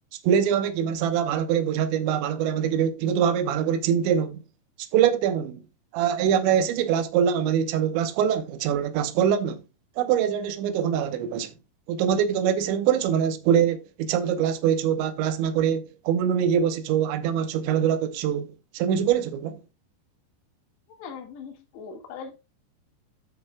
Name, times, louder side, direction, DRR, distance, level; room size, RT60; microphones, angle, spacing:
voice 1, 0.2-4.4 4.9-5.6 5.9-9.6 10.0-11.5 11.9-19.6, right 8 dB, 85° right, 3.4 m, -24 dB
voice 2, 21.0-22.3, left 6 dB, 75° left, 4.1 m, -40 dB
12.5 x 7.1 x 2.3 m
omnidirectional pair, 5.1 m